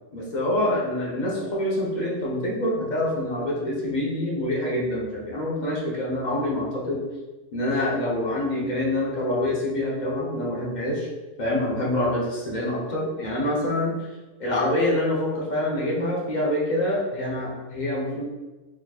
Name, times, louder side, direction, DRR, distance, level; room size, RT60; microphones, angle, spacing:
voice 1, 0.1-7.0 7.5-11.1 11.4-13.9 14.4-18.2, left 1 dB, 40° left, -4 dB, 0.8 m, -26 dB
4.2 x 2.9 x 2.3 m, 1.2 s
omnidirectional pair, 1.3 m